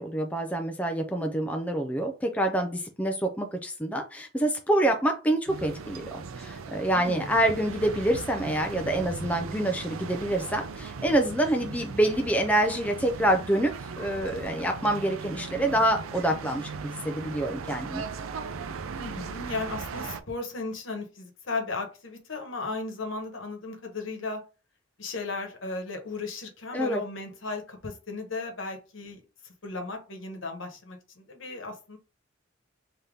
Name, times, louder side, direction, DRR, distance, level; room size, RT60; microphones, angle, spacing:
voice 1, 0.0-13.7 14.0-18.0 26.7-27.0, right 1 dB, 5° left, 4 dB, 0.4 m, -26 dB
sound 1, 5.5-20.2, right 5 dB, 85° right, 0.5 m, -38 dB
voice 2, 6.9-7.4 18.9-24.4 25.0-32.0, left 3 dB, 70° left, 4 dB, 1.1 m, -36 dB
3.4 x 2.8 x 3.7 m, 0.33 s
head